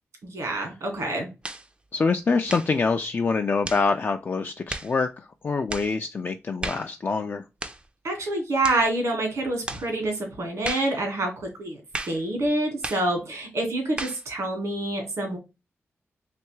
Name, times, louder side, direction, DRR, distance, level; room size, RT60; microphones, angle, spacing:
voice 1, 0.2-1.3 8.0-11.8 12.1-15.4, right 2 dB, 80° right, 1.7 m, -27 dB
sound 1, 1.4-1.7 2.5-2.8 3.6-3.9 4.7-4.9 5.7-5.9 6.6-6.9 7.6-7.9 8.6-8.9 9.7-9.9 10.6-10.9 11.9-12.2 12.8-13.1 14.0-14.2, right 2 dB, 20° right, 0.4 m, -34 dB
voice 2, 1.9-7.4, left 4 dB, 40° left, 0.4 m, -25 dB
3.3 x 3.0 x 3.1 m
wide cardioid pair, 105°, 5 cm